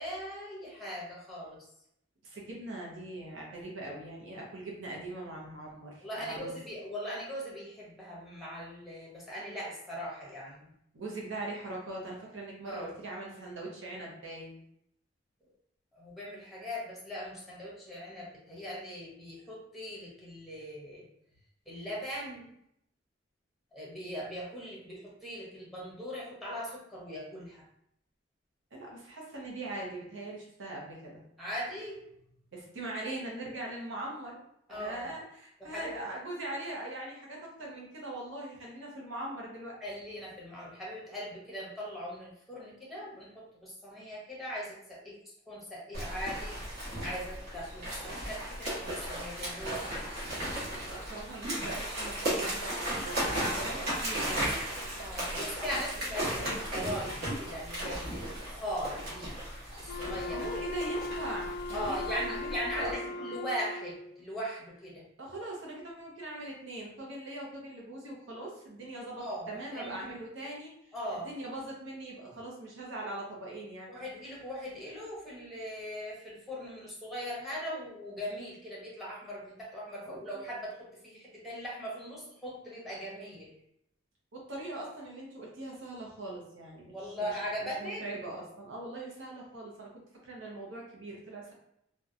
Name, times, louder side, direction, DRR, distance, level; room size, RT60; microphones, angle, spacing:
voice 1, 0.0-1.7 6.0-10.7 12.6-12.9 15.9-21.1 21.7-22.5 23.7-27.6 31.4-32.1 34.7-35.1 35.6-36.0 39.8-46.6 47.0-50.0 54.9-59.4 59.8-60.5 61.7-65.1 69.2-70.2 70.9-71.3 73.9-83.5 86.9-88.0, equal, ahead, -5 dB, 0.8 m, -40 dB
voice 2, 2.2-6.5 10.9-14.6 28.7-31.2 32.5-34.4 34.7-39.7 50.9-54.5 60.3-63.3 65.2-73.9 80.0-80.4 84.3-87.3 87.8-91.5, right 2 dB, 80° right, -3 dB, 0.7 m, -41 dB
sound 1, 45.9-62.9, right 1 dB, 55° right, 0.9 m, -36 dB
Wind instrument woodwind instrument, 59.9-64.2, left 3 dB, 60° left, 0.3 m, -39 dB
2.7 x 2.1 x 2.4 m, 0.74 s
head